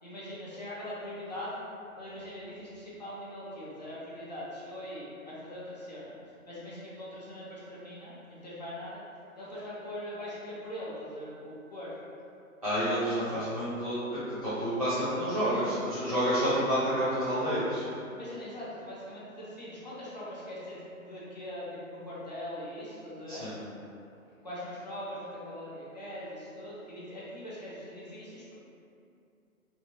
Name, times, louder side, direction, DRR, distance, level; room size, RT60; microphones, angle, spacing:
voice 1, 0.0-1.6 1.9-6.1 6.5-9.0 9.3-12.0 13.2-13.4 18.1-23.5 24.4-28.5, left 1 dB, 35° left, -9 dB, 0.4 m, -41 dB
voice 2, 12.6-17.9 23.3-23.5, equal, 25° right, -17 dB, 0.4 m, -29 dB
2.6 x 2.1 x 2.7 m, 2.6 s
hypercardioid pair, 160°, 42 cm